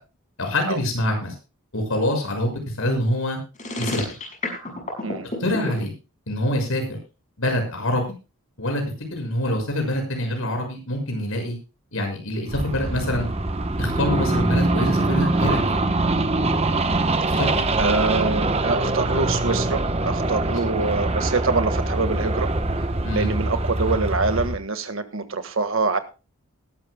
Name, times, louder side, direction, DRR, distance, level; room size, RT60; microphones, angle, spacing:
voice 1, 0.4-1.3 1.7-3.4 3.8-4.2 5.4-5.9 6.3-6.8 7.4-8.1 8.6-8.8 9.1-11.6 11.9-13.3 13.8-15.7 17.3-17.7 23.0-23.3, left 1 dB, 70° left, 3 dB, 6.3 m, -25 dB
sound 1, 3.5-5.7, left 2 dB, 35° left, 5.9 m, -29 dB
sound 2, 12.5-24.6, right 2 dB, 30° right, 0.9 m, -23 dB
voice 2, 17.8-22.5 23.1-26.0, right 3 dB, 65° right, 9 dB, 1.6 m, -25 dB
20.0 x 13.0 x 2.2 m, 0.31 s
head